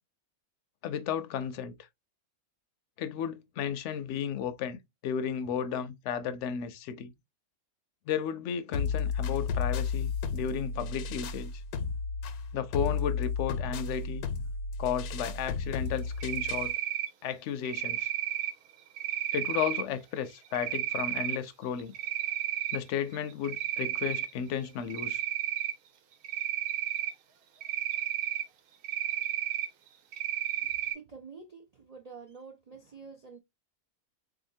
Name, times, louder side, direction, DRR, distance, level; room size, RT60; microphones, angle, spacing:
voice 1, 0.8-1.7 3.0-4.8 5.0-7.1 8.1-11.5 12.5-14.3 14.8-16.7 17.2-18.1 19.3-21.9 22.7-25.2, left 8 dB, 65° left, 0.7 m, -33 dB
sound 1, 8.7-16.7, left 5 dB, 90° left, 1.1 m, -33 dB
Cricket, 16.2-17.1 17.7-18.5 19.0-19.8 20.5-21.4 21.8-22.8 23.1-24.3 24.9-25.7 26.2-27.1 27.6-28.4 28.8-29.7 30.1-30.9, right 12 dB, 85° right, 1.1 m, -32 dB
voice 2, 30.6-33.4, right 5 dB, 70° right, 0.3 m, -48 dB
3.7 x 2.8 x 2.6 m
omnidirectional pair, 1.5 m